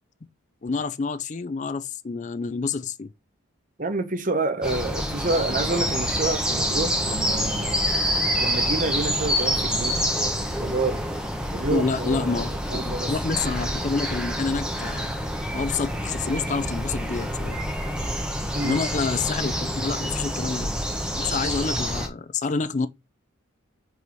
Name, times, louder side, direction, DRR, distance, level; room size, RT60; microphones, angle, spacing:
voice 1, 0.6-3.1 11.6-15.1 15.5-17.6 18.6-20.7 21.2-22.9, left 4 dB, 35° left, 0.4 m, -28 dB
voice 2, 3.8-7.8 8.4-10.0 10.6-11.0 11.5-13.1 18.5-18.8, right 2 dB, 40° right, 1.0 m, -28 dB
sound 1, 4.6-22.1, equal, 5° right, 1.1 m, -27 dB
4.7 x 4.1 x 5.4 m
head